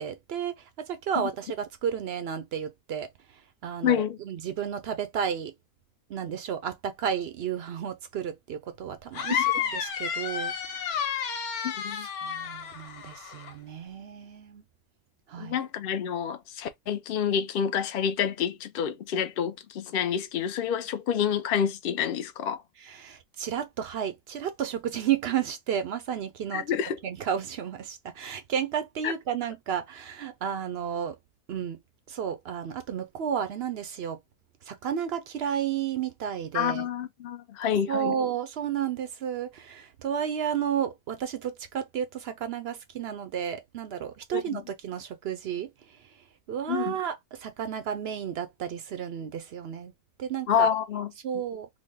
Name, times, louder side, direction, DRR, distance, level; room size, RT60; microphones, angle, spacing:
voice 1, 0.0-3.1 3.6-5.5 6.1-11.0 11.9-14.6 15.3-15.6 22.8-26.7 27.0-31.2 31.5-31.8 32.1-34.2 34.7-36.9 37.9-46.0 46.5-49.9 50.2-50.7 51.2-51.7, right 8 dB, 65° right, 0.6 m, -32 dB
voice 2, 3.8-4.2 11.6-12.1 15.4-22.6 26.5-27.0 29.0-29.1 36.5-38.2 44.3-44.6 46.7-47.0 50.5-51.1, left 8 dB, 55° left, 0.6 m, -28 dB
sound 1, 9.1-13.5, left 8 dB, 80° left, 1.3 m, -31 dB
3.8 x 2.1 x 3.2 m
omnidirectional pair, 1.6 m